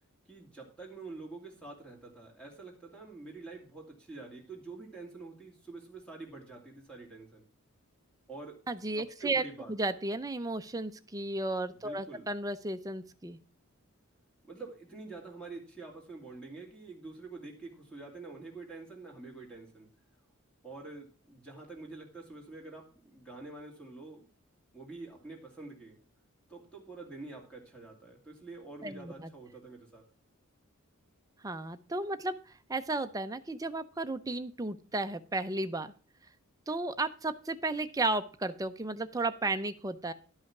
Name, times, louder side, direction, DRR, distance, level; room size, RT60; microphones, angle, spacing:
voice 1, 0.3-7.5 8.3-8.6 9.0-9.7 11.7-12.3 14.5-19.9 20.6-24.3 24.7-26.0 26.5-30.0, right 3 dB, 5° left, -2 dB, 2.6 m, -47 dB
voice 2, 8.7-9.4 9.7-13.4 28.8-29.3 31.4-32.3 32.7-35.9 36.7-40.1, right 2 dB, 15° right, 9 dB, 0.5 m, -34 dB
11.5 x 5.6 x 5.9 m, 0.39 s
head